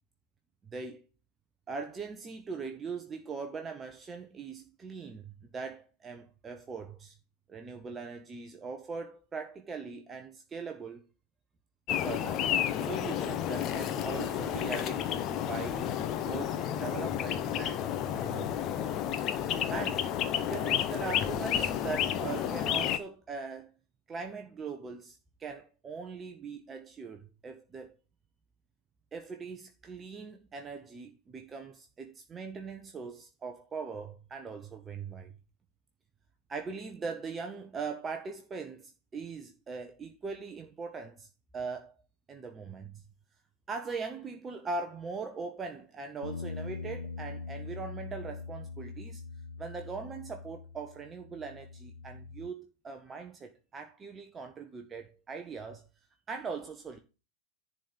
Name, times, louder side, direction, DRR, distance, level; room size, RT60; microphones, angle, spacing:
voice 1, 0.6-1.1 1.7-7.2 7.5-11.0 12.0-12.5 12.8-15.9 16.2-18.7 19.7-23.7 24.1-27.9 29.1-35.3 36.5-41.9 42.3-43.0 43.7-49.2 49.6-55.9 56.3-57.0, right 4 dB, 20° right, 1.0 m, -41 dB
sound 1, 11.9-23.0, left 10 dB, 35° left, 1.0 m, -31 dB
sound 2, 46.2-52.5, left 4 dB, 80° left, 0.8 m, -42 dB
10.5 x 4.2 x 6.9 m
figure-of-eight pair, 90°, 0 cm